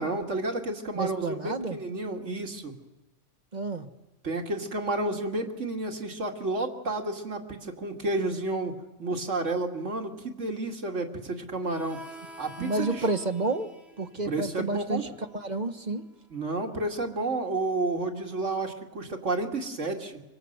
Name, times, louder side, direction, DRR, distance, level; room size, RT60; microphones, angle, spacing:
voice 1, 0.0-2.7 4.2-12.0 12.4-13.0 14.2-15.1 16.3-20.2, right 2 dB, 70° right, 3 dB, 2.8 m, -31 dB
voice 2, 0.9-1.8 3.5-3.9 12.6-13.7 14.0-16.0, right 3 dB, 35° right, 8 dB, 1.5 m, -30 dB
Harmonica, 11.7-16.9, equal, ahead, 6.1 m, -49 dB
26.0 x 24.5 x 8.1 m, 1.0 s
omnidirectional pair, 1.3 m